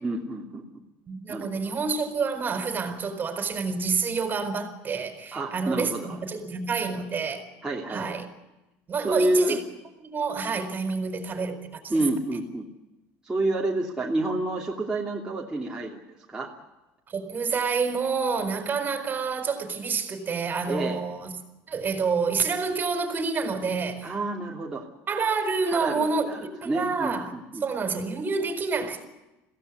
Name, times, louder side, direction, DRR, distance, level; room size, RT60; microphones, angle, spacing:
voice 1, 0.0-0.6 1.3-1.7 5.3-6.2 7.6-8.1 9.0-9.6 11.9-12.6 13.2-16.0 16.3-16.5 20.7-21.0 24.0-24.9 25.6-26.4 26.6-27.7, right 2 dB, 10° right, 3.0 m, -28 dB
voice 2, 1.1-7.4 7.9-8.3 8.9-9.6 10.0-11.8 17.1-21.3 21.7-24.1 25.1-27.3 27.6-29.0, right 4 dB, 30° right, 4.5 m, -28 dB
22.0 x 16.5 x 9.7 m
supercardioid pair, 115°, 6 cm